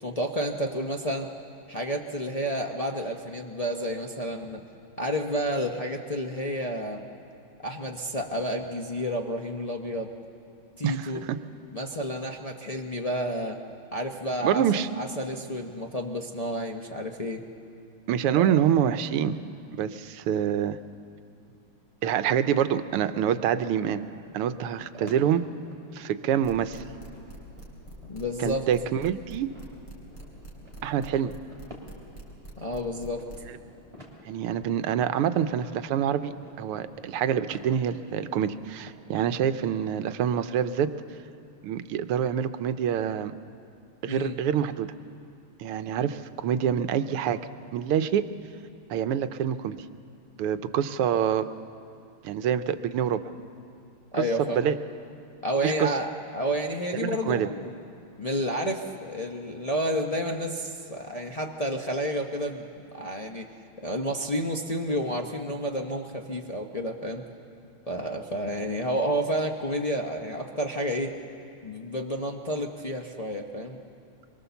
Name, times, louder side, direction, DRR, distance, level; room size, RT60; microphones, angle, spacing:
voice 1, 0.0-1.3 1.7-4.6 5.0-7.1 7.6-10.1 10.8-11.2 11.7-13.6 13.9-14.7 14.9-17.4 18.3-18.6 25.0-25.1 28.1-28.7 32.6-33.2 44.1-44.3 54.1-54.7 55.4-57.7 58.2-62.7 62.9-63.5 63.8-67.2 67.9-71.1 71.6-73.8, equal, 65° left, 1 dB, 0.3 m, -30 dB
voice 2, 10.8-11.4 14.4-14.9 18.1-19.4 19.7-20.8 22.0-24.0 24.3-25.4 25.9-26.8 28.4-29.5 30.8-31.3 34.3-40.9 41.6-43.3 44.0-44.9 45.6-47.4 47.7-48.3 48.9-49.8 50.4-51.5 52.2-53.2 54.2-54.3 54.6-54.8 55.6-55.9 56.9-57.5, right 9 dB, 85° right, 11 dB, 1.7 m, -26 dB
sound 1, 22.3-39.4, left 1 dB, 15° right, 2.8 m, -52 dB
sound 2, 26.4-33.4, right 2 dB, 20° left, 4.0 m, -44 dB
24.0 x 22.5 x 7.0 m, 2.5 s
omnidirectional pair, 2.4 m